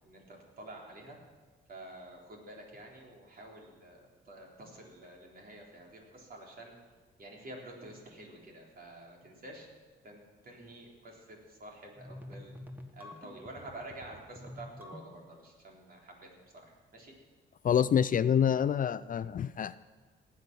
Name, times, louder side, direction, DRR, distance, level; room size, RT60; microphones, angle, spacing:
voice 1, 0.0-1.2 1.7-6.7 7.2-9.7 10.0-12.5 12.9-16.3 16.5-17.1, right 1 dB, 50° right, -1 dB, 3.7 m, -49 dB
sound 1, 12.0-15.4, left 1 dB, 10° right, 1.6 m, -48 dB
voice 2, 17.6-19.8, left 8 dB, 45° left, 16 dB, 0.4 m, -27 dB
18.5 x 8.5 x 6.1 m, 1.4 s
cardioid pair, 90°, 20 cm